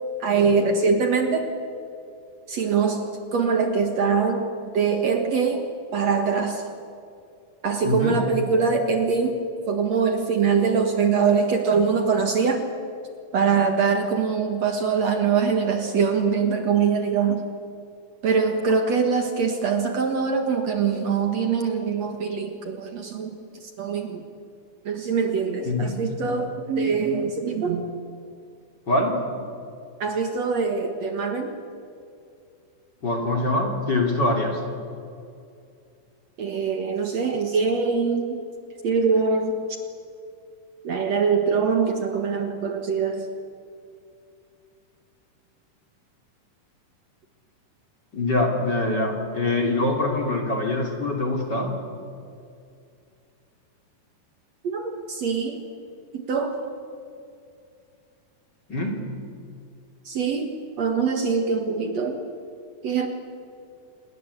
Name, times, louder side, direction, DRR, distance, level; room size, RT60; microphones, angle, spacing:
voice 1, 0.2-1.5 2.5-5.6 5.9-6.6 7.6-9.4 9.7-12.7 13.3-17.4 18.2-24.2 24.9-27.9 30.0-31.5 36.4-38.4 38.8-39.8 40.8-43.3 54.6-55.6 56.1-56.6 60.0-62.2 62.8-63.1, right 5 dB, 55° right, 5 dB, 2.5 m, -23 dB
voice 2, 7.8-8.2 25.7-26.0 28.9-29.2 33.0-34.6 48.1-51.7 58.7-59.0, left 2 dB, 30° left, 1 dB, 3.2 m, -24 dB
27.5 x 22.0 x 8.3 m, 2.5 s
omnidirectional pair, 4.0 m